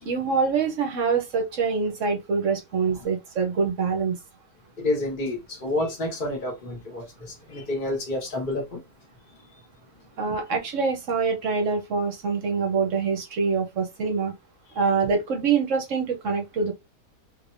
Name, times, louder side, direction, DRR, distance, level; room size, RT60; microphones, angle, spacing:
voice 1, 0.0-4.1 10.2-14.3 14.7-16.7, right 5 dB, 55° right, 1.0 m, -25 dB
voice 2, 4.8-8.8, left 2 dB, 30° left, 1.4 m, -29 dB
3.2 x 3.2 x 2.5 m
omnidirectional pair, 1.8 m